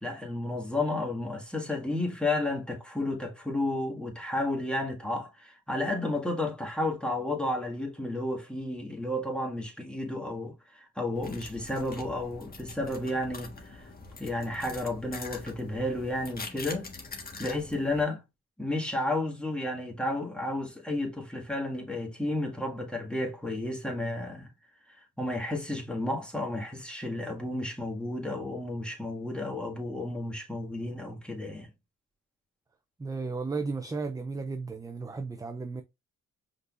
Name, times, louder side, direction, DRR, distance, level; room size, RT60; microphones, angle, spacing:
voice 1, 0.0-13.9 14.2-16.9 17.4-18.2 18.6-24.5 25.0-31.7, left 1 dB, 5° left, 1.8 m, -32 dB
sound 1, 11.2-18.0, left 3 dB, 30° left, 1.4 m, -44 dB
voice 2, 33.0-35.8, right 4 dB, 10° right, 0.5 m, -34 dB
5.3 x 4.0 x 2.5 m
cardioid pair, 90°, 30 cm